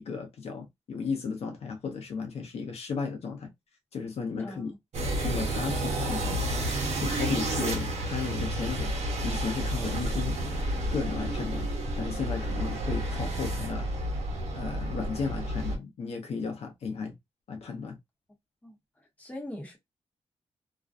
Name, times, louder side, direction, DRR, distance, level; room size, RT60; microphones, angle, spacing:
voice 1, 0.0-3.5 3.9-4.7 5.2-6.4 7.0-8.9 9.2-10.4 10.9-11.7 12.0-13.9 14.5-17.1 17.5-18.0, left 5 dB, 65° left, 0.6 m, -34 dB
voice 2, 4.4-4.8 18.6-19.8, left 1 dB, 15° left, 0.9 m, -42 dB
sound 1, 4.9-15.8, right 1 dB, 75° right, 0.9 m, -30 dB
2.4 x 2.2 x 2.4 m
wide cardioid pair, 150°, 11 cm